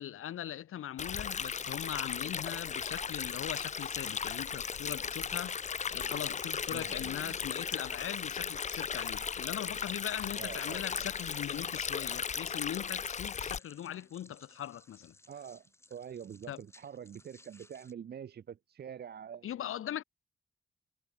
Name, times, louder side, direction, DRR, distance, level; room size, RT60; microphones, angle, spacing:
voice 1, 0.0-15.1 16.5-16.6 19.4-20.0, left 11 dB, 85° left, 0.6 m, -40 dB
Stream, 1.0-13.6, left 6 dB, 35° left, 0.5 m, -36 dB
voice 2, 6.7-7.4 10.4-10.8 15.3-19.6, right 8 dB, 50° right, 0.5 m, -46 dB
sound 1, 12.0-17.9, left 2 dB, 10° left, 2.6 m, -62 dB
wide cardioid pair, 150°, 21 cm